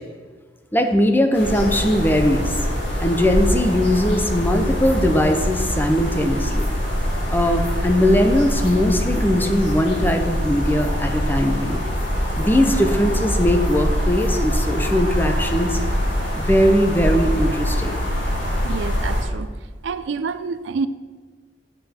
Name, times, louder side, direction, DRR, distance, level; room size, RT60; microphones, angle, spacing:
voice 1, 0.7-2.6 3.0-6.7 7.3-11.8 12.4-15.8 16.3-18.0, equal, 10° left, 6 dB, 0.6 m, -20 dB
sound 1, 1.3-19.2, equal, 75° left, 2.9 m, -23 dB
voice 2, 18.6-19.5 19.8-20.9, right 5 dB, 70° right, 13 dB, 0.4 m, -27 dB
7.8 x 7.4 x 4.3 m, 1.5 s
head